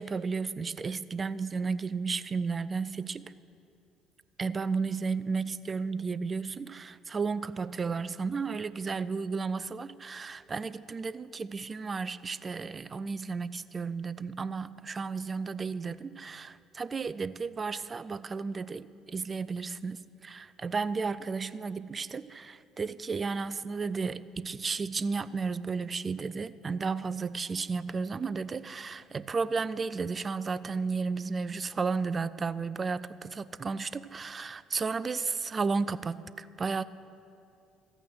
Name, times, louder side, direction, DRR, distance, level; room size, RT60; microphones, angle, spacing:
voice 1, 0.0-3.2 4.4-36.8, right 4 dB, 30° right, 17 dB, 0.4 m, -33 dB
14.0 x 8.9 x 6.3 m, 2.6 s
figure-of-eight pair, 55°, 0 cm